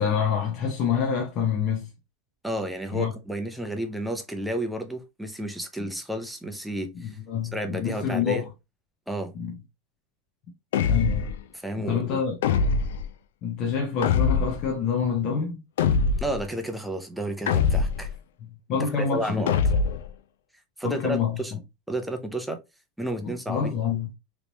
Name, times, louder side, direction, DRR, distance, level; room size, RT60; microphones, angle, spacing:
voice 1, 0.0-1.9 2.9-3.1 5.8-5.9 7.0-8.5 9.3-9.6 10.8-11.3 11.8-12.4 13.4-15.6 18.7-19.4 20.8-21.4 23.2-24.1, left 7 dB, 35° left, 0.8 m, -27 dB
voice 2, 2.4-7.2 7.5-8.4 9.1-9.3 11.5-12.2 16.2-18.1 18.9-19.5 20.8-21.5 21.9-22.6 23.0-23.7, right 1 dB, ahead, 0.5 m, -31 dB
sound 1, 10.7-11.4 12.4-13.1 14.0-14.7 15.8-16.4 17.5-18.1 19.5-20.1, left 5 dB, 85° left, 0.4 m, -23 dB
3.5 x 3.0 x 2.6 m
supercardioid pair, 170°, 0 cm